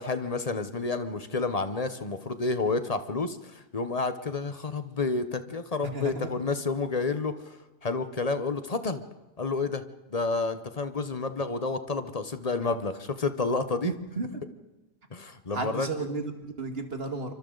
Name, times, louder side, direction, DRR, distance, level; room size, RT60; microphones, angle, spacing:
voice 1, 0.0-9.0 9.4-9.8 10.1-13.9 15.1-15.9, left 3 dB, 30° left, 10 dB, 0.7 m, -30 dB
voice 2, 5.9-6.3 13.8-14.3 15.5-17.3, right 3 dB, 35° right, 6 dB, 2.1 m, -33 dB
27.0 x 25.0 x 4.0 m, 1.1 s
omnidirectional pair, 1.8 m